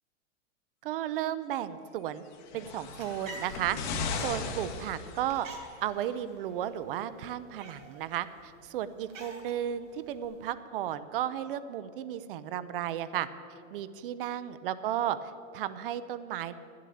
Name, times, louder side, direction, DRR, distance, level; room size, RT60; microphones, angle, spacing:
voice 1, 0.8-2.2 2.5-3.8 4.2-5.5 5.8-13.3 13.7-16.5, right 11 dB, 45° right, 14 dB, 0.6 m, -34 dB
sound 1, 2.3-5.7 6.6-6.7, left 4 dB, 35° left, 1.1 m, -37 dB
sound 2, 2.7-10.5, right 2 dB, 80° right, 3.1 m, -50 dB
10.0 x 7.5 x 8.5 m, 2.5 s
supercardioid pair, 155°, 38 cm